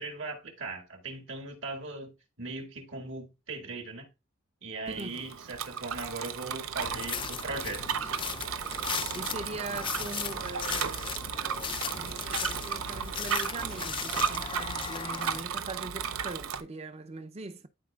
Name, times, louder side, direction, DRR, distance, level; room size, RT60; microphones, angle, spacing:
voice 1, 0.0-2.1 2.4-4.1 4.6-8.2, right 3 dB, 65° right, 1.9 m, -39 dB
Bicycle, 4.9-16.6, right 7 dB, 90° right, 0.6 m, -35 dB
sound 1, 6.8-15.4, left 7 dB, 25° left, 0.3 m, -37 dB
voice 2, 9.1-11.3 11.8-17.7, right 3 dB, 30° right, 0.6 m, -41 dB
12.0 x 4.3 x 2.3 m
head